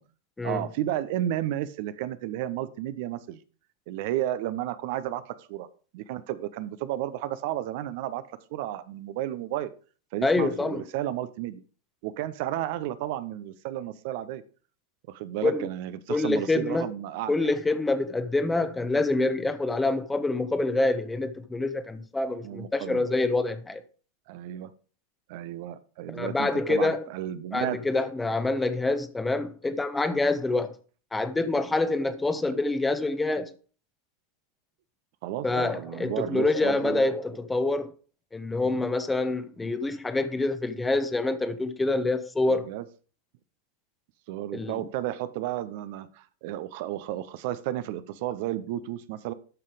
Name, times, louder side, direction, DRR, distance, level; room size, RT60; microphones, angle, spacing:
voice 1, 0.4-3.4 3.9-5.7 5.9-8.2 8.5-9.7 10.1-11.6 12.0-14.4 15.1-17.5 22.4-23.0 24.3-24.7 25.3-27.8 35.2-37.0 38.6-38.7 42.5-42.9 44.3-49.3, right 13 dB, 50° right, 0.7 m, -32 dB
voice 2, 10.2-10.8 15.4-15.7 16.1-16.9 17.3-23.8 26.1-27.0 27.5-30.7 31.1-33.5 35.4-37.9 38.3-42.7 44.5-44.8, left 2 dB, 10° left, 1.0 m, -26 dB
12.5 x 5.6 x 4.9 m
figure-of-eight pair, 90°, 0 cm